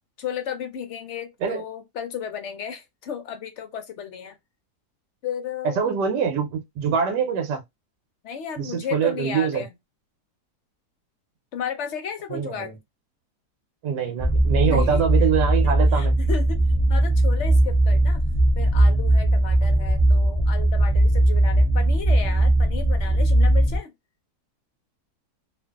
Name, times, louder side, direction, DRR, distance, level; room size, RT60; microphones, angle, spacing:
voice 1, 0.2-4.3 5.2-6.0 8.2-9.7 11.5-12.7 14.6-15.0 15.6-16.6 16.9-18.2 18.6-23.9, left 7 dB, 65° left, 0.7 m, -34 dB
voice 2, 5.8-7.6 8.6-9.6 12.3-12.7 13.8-16.2, right 7 dB, 85° right, 1.3 m, -24 dB
sound 1, 14.2-23.8, right 1 dB, 30° right, 0.3 m, -19 dB
2.7 x 2.5 x 2.2 m
omnidirectional pair, 1.8 m